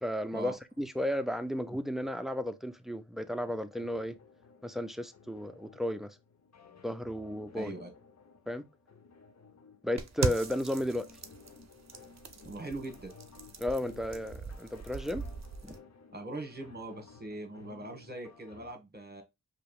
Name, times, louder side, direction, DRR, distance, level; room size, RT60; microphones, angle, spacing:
voice 1, 0.0-4.2 4.6-6.2 6.8-7.7 8.5-8.6 9.8-11.1 13.6-15.2 15.6-15.7, left 1 dB, ahead, 0.5 m, -34 dB
sound 1, 3.7-18.7, left 4 dB, 50° left, 0.7 m, -56 dB
voice 2, 7.5-7.9 12.4-13.1 16.1-19.2, right 2 dB, 25° right, 1.3 m, -41 dB
sound 2, 10.0-15.8, right 4 dB, 50° right, 0.6 m, -39 dB
4.7 x 2.9 x 2.3 m
wide cardioid pair, 50°, 36 cm